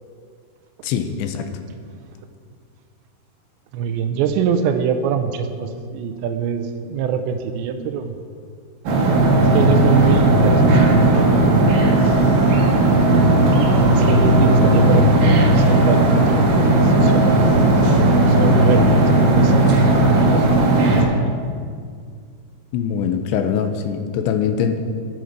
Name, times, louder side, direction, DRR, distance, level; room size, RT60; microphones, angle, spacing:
voice 1, 0.8-1.5 14.6-15.1 22.7-24.8, left 7 dB, 80° left, 7 dB, 3.0 m, -23 dB
voice 2, 3.7-8.1 9.4-11.4 11.7-12.5 13.9-17.4 18.2-19.7 20.3-21.3, right 7 dB, 80° right, 8 dB, 2.8 m, -25 dB
sound 1, 8.9-21.0, right 2 dB, 60° right, 2.7 m, -15 dB
13.0 x 9.5 x 5.2 m, 2.1 s
omnidirectional pair, 5.3 m